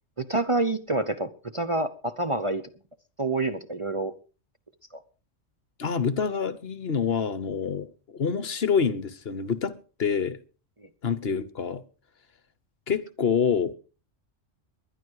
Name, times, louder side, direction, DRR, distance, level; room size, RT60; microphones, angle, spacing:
voice 1, 0.2-2.6 3.2-4.1 4.9-5.0 10.8-10.9, right 2 dB, 30° right, 0.8 m, -27 dB
voice 2, 5.8-10.4 11.0-11.8 12.9-13.7, left 6 dB, 55° left, 1.2 m, -27 dB
20.5 x 11.0 x 4.8 m
omnidirectional pair, 1.3 m